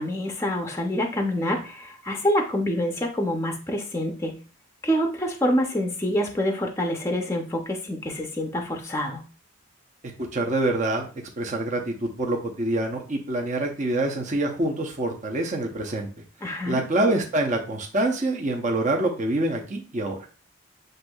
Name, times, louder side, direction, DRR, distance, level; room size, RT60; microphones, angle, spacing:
voice 1, 0.0-4.4 4.8-9.2 16.4-16.8, equal, 15° left, 3 dB, 0.5 m, -26 dB
voice 2, 10.2-11.1 11.4-16.1 16.6-20.2, right 2 dB, 35° right, 2 dB, 0.7 m, -26 dB
7.8 x 2.6 x 2.3 m, 0.36 s
head